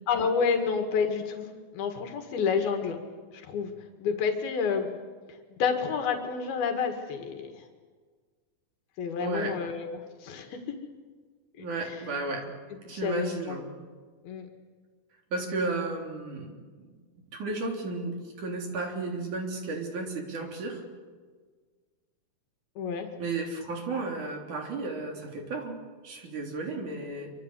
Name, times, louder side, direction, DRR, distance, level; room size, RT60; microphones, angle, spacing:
voice 1, 0.1-3.0 3.3-3.7 4.0-5.0 5.5-7.6 9.0-10.6 11.6-12.0 12.9-13.6 14.2-14.5 22.8-23.1, left 6 dB, 85° left, 4 dB, 3.8 m, -29 dB
voice 2, 9.2-9.5 11.6-12.5 12.8-13.6 15.3-20.8 23.2-27.3, right 3 dB, 55° right, 2 dB, 5.1 m, -34 dB
26.5 x 25.0 x 8.2 m, 1.5 s
omnidirectional pair, 4.2 m